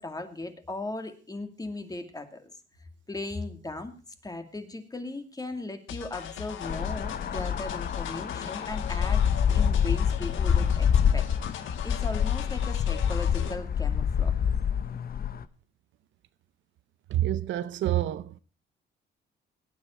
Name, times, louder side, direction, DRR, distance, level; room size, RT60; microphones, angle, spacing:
voice 1, 0.0-2.5 3.1-3.9 4.2-9.2 9.5-10.9 11.1-11.2 11.8-14.3, left 2 dB, 20° left, 2.4 m, -37 dB
sound 1, 5.9-13.6, left 9 dB, 80° left, 1.4 m, -39 dB
sound 2, 6.6-15.4, left 8 dB, 50° left, 0.9 m, -26 dB
voice 2, 17.1-18.4, right 12 dB, 75° right, 0.7 m, -27 dB
18.5 x 9.8 x 4.4 m
cardioid pair, 90°, 20 cm